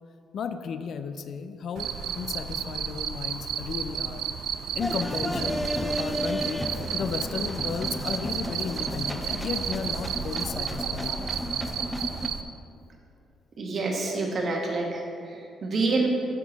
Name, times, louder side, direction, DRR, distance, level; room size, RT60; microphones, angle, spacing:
voice 1, 0.3-4.2 4.8-11.1, left 6 dB, 60° left, 10 dB, 0.4 m, -34 dB
Cricket, 1.8-12.4, right 7 dB, 75° right, 0.4 m, -32 dB
sound 1, 4.8-12.3, equal, 5° left, 0.4 m, -33 dB
voice 2, 13.6-16.1, right 3 dB, 50° right, 0 dB, 1.4 m, -28 dB
7.6 x 6.6 x 4.0 m, 2.6 s
cardioid pair, 90°, 0 cm